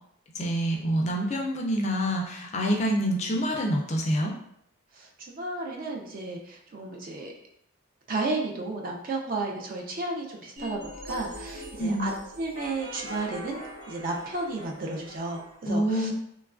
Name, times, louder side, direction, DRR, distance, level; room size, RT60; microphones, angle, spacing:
voice 1, 0.3-4.3 11.7-12.1 15.7-16.1, equal, 30° left, 1 dB, 0.3 m, -27 dB
voice 2, 4.9-7.3 8.1-12.1 12.4-13.6 13.9-16.1, right 2 dB, 40° right, 0 dB, 0.4 m, -33 dB
sound 1, 10.6-15.6, equal, 70° right, 1.1 m, -42 dB
3.0 x 2.3 x 2.4 m, 0.72 s
head